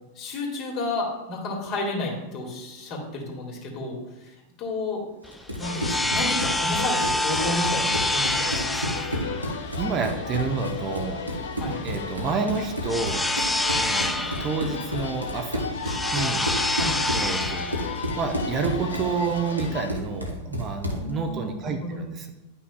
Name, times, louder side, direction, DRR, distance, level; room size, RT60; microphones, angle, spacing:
voice 1, 0.1-5.0 5.6-9.0 11.6-11.8 16.8-17.1 21.0-22.0, left 2 dB, 40° left, -1 dB, 2.2 m, -32 dB
sound 1, 5.2-19.8, left 1 dB, 5° left, 0.4 m, -28 dB
Run, 5.3-21.1, equal, 90° right, 1.2 m, -32 dB
sound 2, 5.6-19.9, left 6 dB, 70° left, 0.5 m, -36 dB
voice 2, 9.8-11.3 11.8-13.3 13.8-15.7 16.1-16.5 17.1-17.8 18.2-22.3, right 5 dB, 30° right, 5 dB, 0.7 m, -29 dB
10.5 x 5.8 x 2.3 m, 1.0 s
figure-of-eight pair, 90°, 0 cm